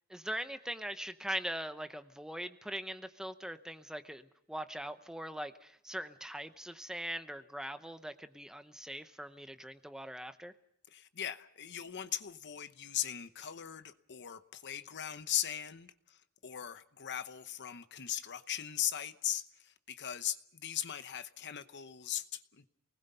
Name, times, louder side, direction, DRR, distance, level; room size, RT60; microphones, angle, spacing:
voice 1, 0.1-10.5, equal, 5° right, 9 dB, 0.8 m, -41 dB
voice 2, 10.9-22.7, left 11 dB, 55° left, 12 dB, 0.9 m, -39 dB
28.5 x 20.0 x 5.6 m, 0.71 s
head